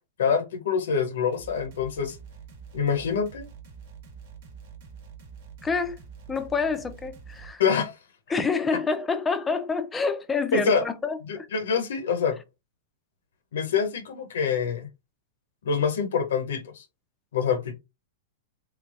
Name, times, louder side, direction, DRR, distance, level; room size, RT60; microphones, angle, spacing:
voice 1, 0.2-2.2 2.7-3.5 7.6-7.9 10.5-10.8 11.3-12.4 13.5-14.9 15.6-16.8 17.3-17.7, left 6 dB, 80° left, 0.7 m, -25 dB
sound 1, 1.3-7.5, right 6 dB, 55° right, 1.1 m, -46 dB
voice 2, 5.6-6.0 6.3-7.6 8.3-11.5, left 4 dB, 10° left, 0.4 m, -27 dB
3.4 x 3.2 x 2.4 m
supercardioid pair, 155°, 0 cm